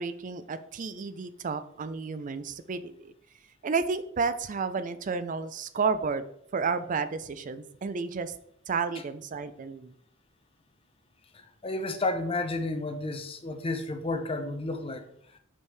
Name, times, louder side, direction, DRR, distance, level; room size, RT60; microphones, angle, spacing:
voice 1, 0.0-3.1 3.6-6.2 6.5-8.3 8.7-9.9, right 5 dB, 40° right, 12 dB, 0.4 m, -31 dB
voice 2, 11.6-15.0, left 2 dB, 30° left, 6 dB, 0.7 m, -31 dB
5.4 x 5.4 x 3.3 m, 0.69 s
head